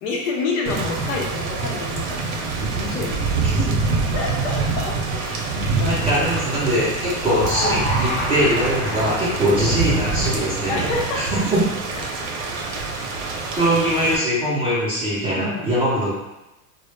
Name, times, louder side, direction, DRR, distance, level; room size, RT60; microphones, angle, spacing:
voice 1, 0.0-3.4 4.1-6.0 6.5-6.7 10.7-11.4 15.4-15.7, left 3 dB, 65° left, -1 dB, 0.7 m, -28 dB
Thunder / Rain, 0.7-14.2, right 4 dB, 70° right, 0.6 m, -25 dB
voice 2, 5.8-10.9 11.2-11.6 13.5-16.1, equal, 15° right, -10 dB, 0.4 m, -22 dB
sound 1, 7.3-13.6, left 1 dB, 35° left, 0.6 m, -31 dB
2.0 x 2.0 x 3.1 m, 0.98 s
supercardioid pair, 150°, 43 cm